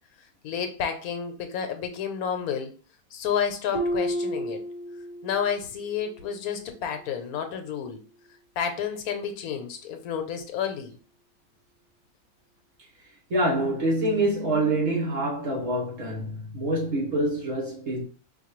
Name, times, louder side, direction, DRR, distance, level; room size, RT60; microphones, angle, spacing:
voice 1, 0.4-2.7 3.1-4.6 5.2-8.0 8.6-10.9, left 7 dB, 80° left, 1.1 m, -30 dB
Harp, 3.7-5.5 5.9-6.3 6.8-6.9, equal, 40° left, 0.8 m, -31 dB
voice 2, 13.3-18.1, right 1 dB, 60° right, 1.5 m, -26 dB
4.5 x 2.3 x 3.0 m
omnidirectional pair, 1.6 m